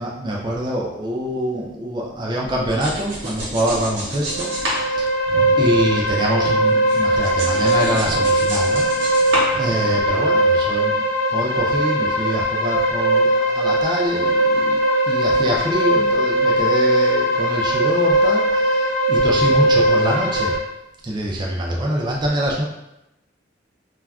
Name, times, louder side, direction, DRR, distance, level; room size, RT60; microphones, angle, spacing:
voice 1, 0.0-5.1 5.6-14.8 15.1-20.6 21.0-22.6, equal, 25° right, -2 dB, 0.3 m, -25 dB
sound 1, 2.5-6.2 6.4-10.2, equal, 75° right, 0.8 m, -29 dB
sound 2, 4.2-20.6, right 1 dB, 75° left, 0.8 m, -19 dB
2.3 x 2.1 x 3.4 m, 0.88 s
head